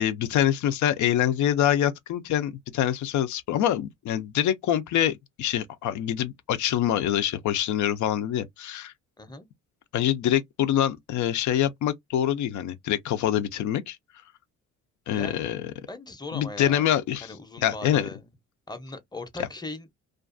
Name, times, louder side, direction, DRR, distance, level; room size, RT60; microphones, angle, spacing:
voice 1, 0.0-8.9 9.9-14.0 15.1-15.7 16.3-17.3 17.6-18.1, left 11 dB, 75° left, 0.5 m, -25 dB
voice 2, 9.2-9.5 15.1-15.4 15.9-16.9 17.2-18.3 18.7-19.9, left 2 dB, 15° left, 0.7 m, -39 dB
2.5 x 2.3 x 2.5 m
cardioid pair, 90°, 30 cm